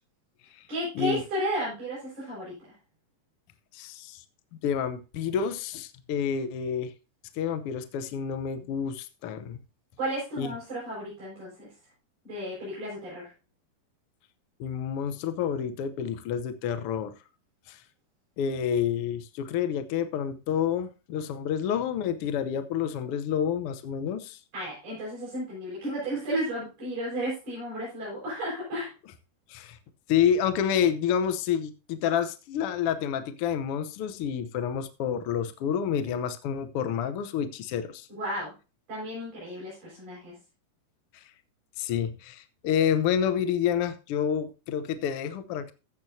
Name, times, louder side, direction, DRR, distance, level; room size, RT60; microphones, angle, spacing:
voice 1, 0.7-2.6 10.0-11.7 12.2-13.3 24.5-28.9 38.1-38.5 38.9-40.4, equal, 50° right, -7 dB, 7.6 m, -33 dB
voice 2, 3.7-4.2 4.6-6.9 7.3-9.6 10.4-10.5 14.6-17.1 17.7-17.8 18.4-24.4 29.5-29.8 30.1-38.1 41.8-45.7, left 8 dB, 80° left, 11 dB, 1.3 m, -29 dB
15.5 x 7.7 x 2.7 m, 0.30 s
omnidirectional pair, 3.7 m